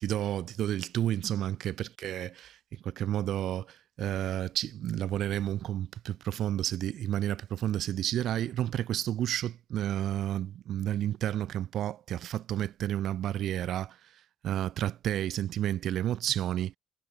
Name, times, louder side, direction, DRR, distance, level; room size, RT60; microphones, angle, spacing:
voice 1, 0.0-14.0 14.4-16.8, right 11 dB, 65° right, 3.1 m, -31 dB
cardioid pair, 95°, 0 cm